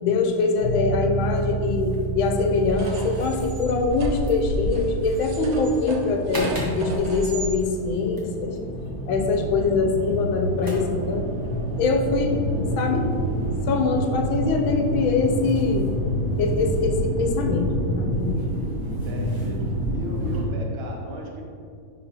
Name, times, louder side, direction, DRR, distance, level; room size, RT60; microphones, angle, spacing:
voice 1, 0.0-8.6 9.1-11.3 11.8-12.4 12.8-13.1 13.7-15.9 16.4-18.6, left 4 dB, 80° left, 4 dB, 1.4 m, -23 dB
sound 1, 0.6-15.0, right 4 dB, 65° left, 1.8 m, -34 dB
sound 2, 1.2-20.5, equal, 15° right, 0.7 m, -29 dB
sound 3, 2.6-7.5, equal, 85° right, 1.6 m, -32 dB
voice 2, 18.8-19.6 19.9-21.4, right 1 dB, 60° right, 0 dB, 0.6 m, -35 dB
10.0 x 3.8 x 2.9 m, 2.3 s
omnidirectional pair, 2.2 m